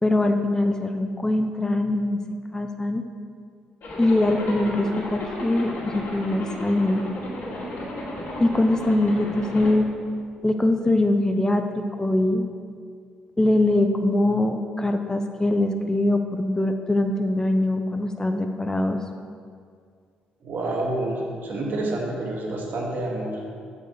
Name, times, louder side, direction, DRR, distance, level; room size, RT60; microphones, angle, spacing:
voice 1, 0.0-2.2 2.5-3.0 4.0-7.0 8.4-9.9 10.4-12.5 13.4-19.0, left 1 dB, 15° left, 5 dB, 0.5 m, -22 dB
Zipper (clothing), 3.8-9.7, left 1 dB, 60° left, 2.0 m, -34 dB
voice 2, 20.4-23.4, right 2 dB, 55° right, -1 dB, 1.5 m, -28 dB
7.4 x 5.3 x 4.6 m, 2.2 s
figure-of-eight pair, 45°, 4 cm